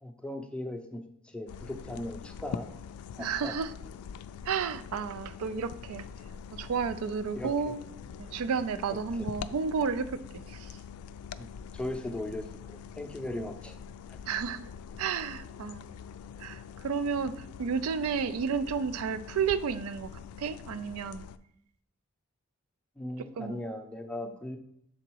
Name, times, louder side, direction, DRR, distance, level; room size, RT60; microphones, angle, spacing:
voice 1, 0.0-2.7 3.2-3.6 7.3-7.5 11.4-13.8 23.0-24.6, left 1 dB, 5° left, 5 dB, 0.5 m, -38 dB
sound 1, 1.5-21.4, left 7 dB, 90° left, 0.3 m, -44 dB
voice 2, 3.2-3.7 4.4-6.1 6.5-7.8 8.2-10.8 13.4-13.5 14.3-14.7 15.0-16.0 16.4-20.1 20.4-21.3 23.4-23.6, right 6 dB, 75° right, 13 dB, 0.4 m, -32 dB
7.0 x 3.9 x 4.5 m, 0.75 s
head